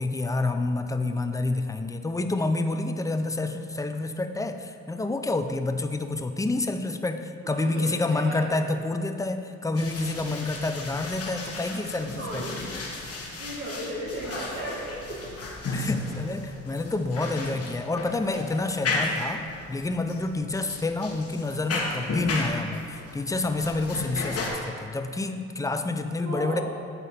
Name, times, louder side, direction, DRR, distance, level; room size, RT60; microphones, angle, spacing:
voice 1, 0.0-12.5 15.7-26.6, left 2 dB, 10° left, 7 dB, 0.4 m, -28 dB
voice 2, 7.4-8.5 10.3-10.4 12.2-12.4 13.4-15.2 26.2-26.6, right 1 dB, 45° right, -8 dB, 1.6 m, -35 dB
sound 1, 9.8-24.5, left 3 dB, 50° left, 1.3 m, -34 dB
8.4 x 4.1 x 5.7 m, 2.3 s
cardioid pair, 90°, 30 cm